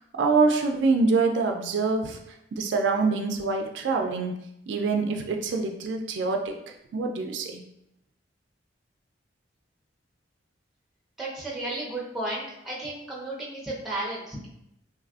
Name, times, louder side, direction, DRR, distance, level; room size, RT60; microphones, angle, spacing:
voice 1, 0.2-2.2 2.5-4.3 4.7-6.5 6.9-7.6, right 4 dB, 70° right, 3 dB, 0.3 m, -25 dB
voice 2, 11.2-14.5, right 2 dB, ahead, -5 dB, 0.6 m, -33 dB
3.2 x 2.3 x 2.3 m, 0.79 s
head